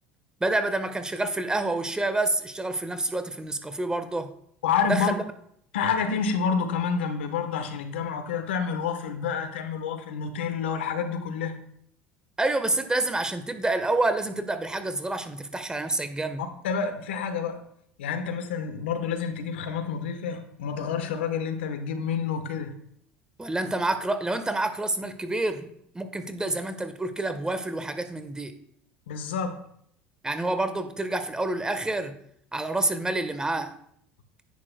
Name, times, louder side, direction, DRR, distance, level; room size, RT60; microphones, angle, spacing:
voice 1, 0.4-4.3 4.9-5.2 12.4-16.4 23.4-25.7 25.9-28.5 30.2-32.2 32.5-33.8, right 2 dB, 15° right, 1.1 m, -28 dB
voice 2, 4.6-5.1 5.7-11.6 16.6-17.6 18.0-22.7 29.1-29.6, left 6 dB, 85° left, 1.1 m, -28 dB
10.5 x 8.9 x 2.2 m
hypercardioid pair, 75°, 6 cm